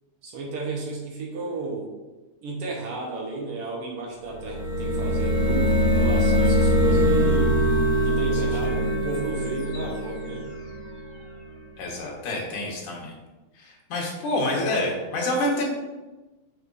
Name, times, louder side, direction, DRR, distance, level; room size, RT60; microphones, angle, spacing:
voice 1, 0.2-1.9 2.4-7.6 7.9-10.5, right 3 dB, 65° right, -2 dB, 1.4 m, -33 dB
sound 1, 4.3-11.0, equal, 55° left, 1.6 m, -22 dB
voice 2, 8.3-8.7 11.8-13.1 13.6-15.7, left 1 dB, 70° left, -2 dB, 2.8 m, -28 dB
8.8 x 4.8 x 2.6 m, 1.1 s
omnidirectional pair, 3.8 m